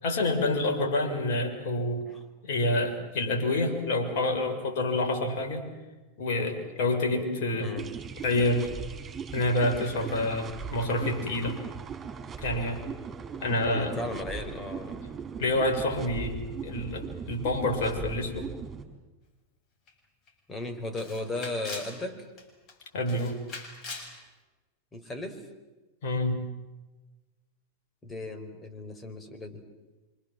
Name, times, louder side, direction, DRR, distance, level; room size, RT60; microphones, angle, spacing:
voice 1, 0.0-2.1 2.4-5.7 6.2-7.7 8.2-8.7 9.3-11.6 12.4-12.8 13.4-13.9 15.4-18.5 22.9-23.4 26.0-26.4, left 1 dB, 60° left, 3 dB, 6.6 m, -28 dB
voice 2, 7.6-7.9 13.6-15.0 20.5-22.3 24.9-25.4 28.0-29.6, left 2 dB, 20° left, 7 dB, 5.0 m, -36 dB
sound 1, 7.8-18.8, right 6 dB, 25° right, 5.7 m, -39 dB
Camera, 19.9-20.0 20.3-20.4 21.0-22.0 22.4-22.7 23.1-24.1, left 3 dB, 40° left, 7.2 m, -41 dB
27.0 x 26.5 x 7.7 m, 1.1 s
hypercardioid pair, 95°, 0 cm